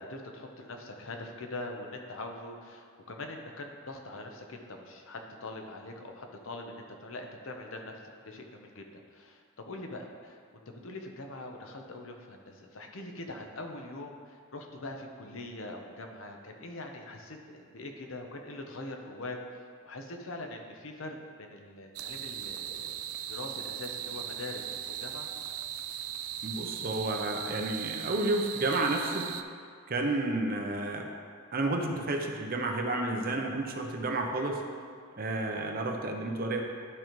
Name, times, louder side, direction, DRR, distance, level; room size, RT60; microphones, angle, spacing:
voice 1, 0.0-22.9 23.3-25.3, left 2 dB, 65° left, 3 dB, 0.8 m, -43 dB
sound 1, 22.0-29.4, right 10 dB, 75° right, 0.4 m, -38 dB
voice 2, 26.4-29.3 29.9-31.1 31.5-34.6 35.2-36.6, right 2 dB, 40° right, 3 dB, 0.7 m, -31 dB
11.5 x 5.1 x 3.1 m, 2.1 s
head